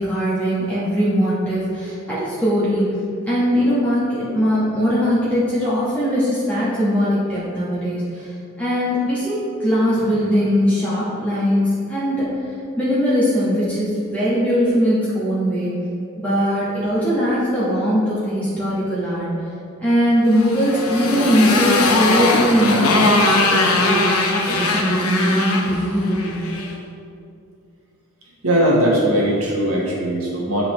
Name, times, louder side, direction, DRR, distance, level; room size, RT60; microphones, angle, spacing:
voice 1, 0.0-2.9 3.3-8.3 8.6-12.3 12.8-15.7 16.2-19.4 19.8-26.4, equal, 5° left, -11 dB, 1.6 m, -20 dB
Motorcycle, 20.3-26.7, left 2 dB, 85° left, 0.9 m, -20 dB
voice 2, 28.4-30.7, equal, 80° right, -4 dB, 1.6 m, -19 dB
11.0 x 4.0 x 3.3 m, 2.5 s
head